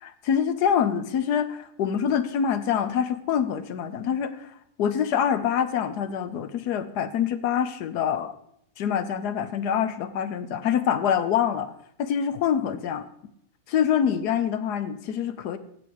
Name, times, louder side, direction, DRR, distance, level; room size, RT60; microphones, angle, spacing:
voice 1, 0.0-8.3 8.8-11.7 12.0-13.0 13.7-15.6, left 8 dB, 85° left, 11 dB, 1.3 m, -25 dB
16.5 x 7.1 x 4.7 m, 0.71 s
omnidirectional pair, 1.7 m